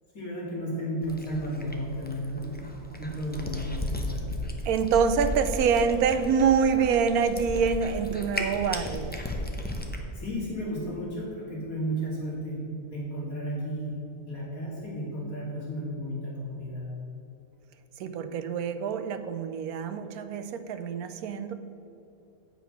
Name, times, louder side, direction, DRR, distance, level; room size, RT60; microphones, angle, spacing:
voice 1, 0.1-2.6 3.0-4.3 10.1-16.9, equal, 70° left, -5 dB, 2.8 m, -33 dB
Cat, 1.0-10.0, left 1 dB, 10° left, 0.5 m, -35 dB
voice 2, 4.6-9.1 18.0-21.5, right 6 dB, 85° right, 9 dB, 1.1 m, -26 dB
9.2 x 5.7 x 5.8 m, 2.9 s
omnidirectional pair, 1.5 m